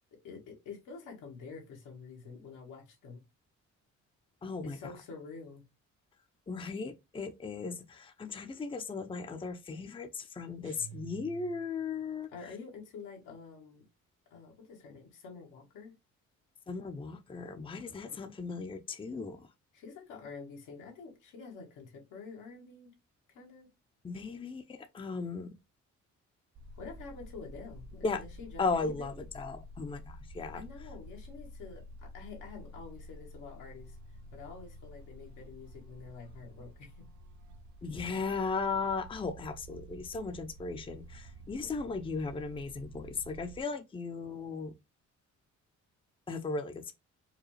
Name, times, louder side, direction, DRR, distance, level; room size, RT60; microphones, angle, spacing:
voice 1, 0.2-3.2 4.6-5.6 12.3-13.8 14.3-15.9 19.7-22.9 23.3-23.7 26.8-29.2 30.5-34.0 34.3-36.9, left 4 dB, 90° left, 1.6 m, -48 dB
voice 2, 4.4-4.8 6.5-12.3 16.7-19.4 24.0-25.6 28.0-28.2 28.6-30.6 37.8-44.7 46.3-46.9, left 4 dB, 15° left, 0.5 m, -36 dB
sound 1, 10.6-12.0, right 10 dB, 40° right, 1.0 m, -50 dB
sound 2, 26.6-43.6, equal, 70° right, 0.6 m, -50 dB
4.7 x 2.3 x 3.1 m
cardioid pair, 90°, 30 cm